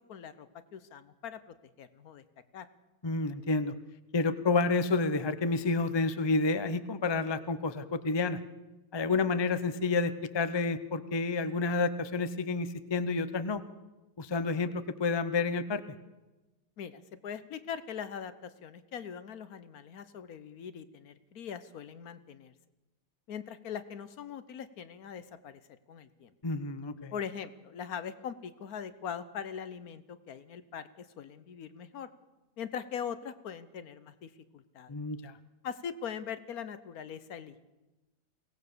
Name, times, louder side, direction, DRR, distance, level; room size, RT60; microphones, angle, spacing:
voice 1, 0.1-2.2 2.5-2.7 16.8-22.5 23.3-25.6 25.9-26.3 27.1-32.1 32.6-34.9 35.6-37.6, left 7 dB, 65° left, 12 dB, 1.3 m, -41 dB
voice 2, 3.0-3.7 4.1-8.4 8.9-13.6 14.2-15.8 26.4-27.1 34.9-35.3, left 3 dB, 30° left, 12 dB, 0.5 m, -29 dB
23.0 x 17.5 x 6.8 m, 1.1 s
omnidirectional pair, 1.8 m